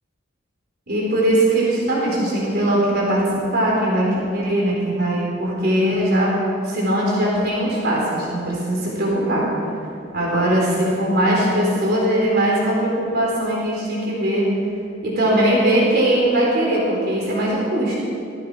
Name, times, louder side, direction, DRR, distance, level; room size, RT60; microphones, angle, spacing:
voice 1, 0.9-6.3 6.6-9.5 10.1-14.5 15.0-17.9, right 1 dB, 55° right, -4 dB, 4.1 m, -20 dB
19.0 x 14.5 x 5.1 m, 2.6 s
head